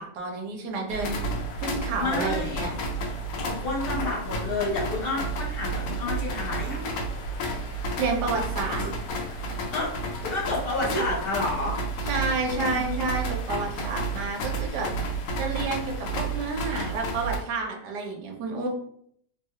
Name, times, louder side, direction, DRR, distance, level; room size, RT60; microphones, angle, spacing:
voice 1, 0.0-2.7 7.7-8.8 12.0-18.7, right 3 dB, 75° right, 1 dB, 1.3 m, -30 dB
sound 1, 0.9-17.4, right 2 dB, 85° left, 1.2 m, -31 dB
voice 2, 2.0-2.7 3.3-6.8 9.7-9.9 10.2-11.8, left 3 dB, 65° left, -3 dB, 0.6 m, -30 dB
sound 2, 4.0-4.3 4.6-4.8 6.5-7.2 8.7-9.0 9.5-10.0 10.8-11.6 12.6-13.1, right 4 dB, 45° right, 1.1 m, -36 dB
3.3 x 2.3 x 2.7 m, 0.67 s
omnidirectional pair, 1.9 m